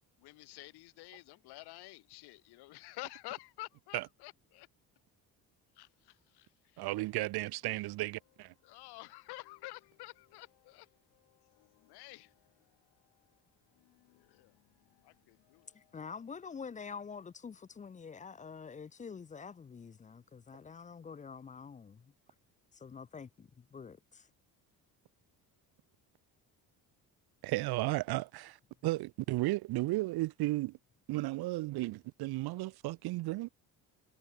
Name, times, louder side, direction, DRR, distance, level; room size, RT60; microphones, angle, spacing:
voice 1, 0.2-4.7 5.8-6.9 8.6-10.9 11.8-12.3 14.1-14.5 15.0-15.7, left 20 dB, 70° left, 0.5 m, -50 dB
voice 2, 6.8-8.5 27.4-28.6 28.8-30.8 31.1-33.5, right 19 dB, 65° right, 0.5 m, -34 dB
sound 1, 7.1-18.4, left 22 dB, 90° left, 4.1 m, -73 dB
voice 3, 15.7-22.1 22.7-24.3, left 6 dB, 20° left, 0.4 m, -47 dB
supercardioid pair, 75°, 41 cm